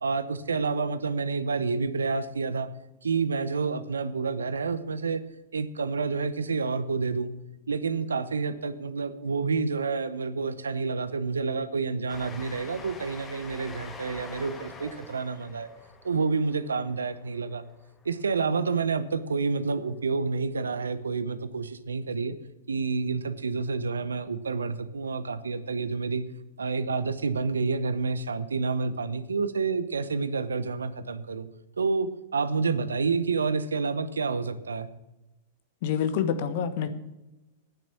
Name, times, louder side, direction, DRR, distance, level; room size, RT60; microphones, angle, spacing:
voice 1, 0.0-2.7 3.0-5.2 5.5-7.3 7.7-15.7 16.0-17.6 18.0-22.3 22.7-26.2 26.6-31.5 31.8-34.9, right 4 dB, 80° right, 13 dB, 0.9 m, -29 dB
Train, 12.1-18.2, left 4 dB, 20° left, 1.7 m, -45 dB
voice 2, 35.8-36.9, left 8 dB, 55° left, 11 dB, 1.3 m, -27 dB
9.5 x 7.5 x 8.6 m, 0.98 s
hypercardioid pair, 100°, 0 cm